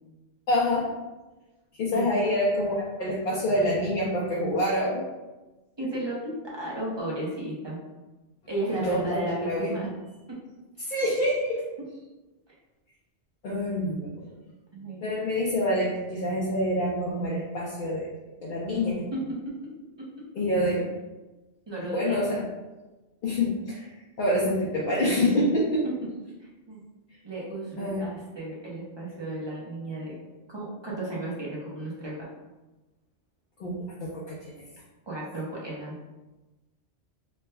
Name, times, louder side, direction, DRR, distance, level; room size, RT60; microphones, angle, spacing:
voice 1, 0.5-0.9 1.7-5.0 8.7-9.8 10.8-11.6 13.4-14.4 15.0-18.1 18.4-19.1 20.4-20.9 21.8-22.5 23.2-23.9 24.2-25.9 27.8-28.1 33.6-34.7, left 1 dB, 55° left, -5 dB, 0.6 m, -27 dB
voice 2, 5.8-6.2 6.4-7.8 8.5-9.9 10.3-10.4 10.8-10.9 14.7-15.0 19.1-19.4 21.7-22.2 26.4-26.8 27.2-30.2 30.5-32.3 35.1-36.0, right 1 dB, 25° right, -5 dB, 0.7 m, -34 dB
3.2 x 2.2 x 3.2 m, 1.1 s
omnidirectional pair, 1.2 m